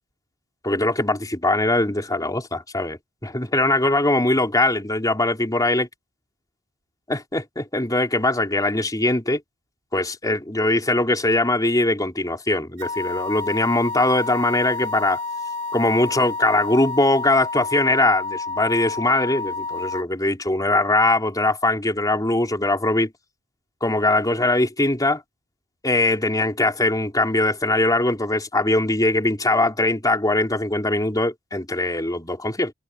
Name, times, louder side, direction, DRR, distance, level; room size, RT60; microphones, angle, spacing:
voice 1, 0.6-5.9 7.1-9.4 9.9-15.2 15.7-23.1 23.8-25.2 25.8-32.7, left 2 dB, 15° left, 4.1 m, -21 dB
sound 1, 12.8-20.0, left 3 dB, 80° right, 4.4 m, -30 dB
head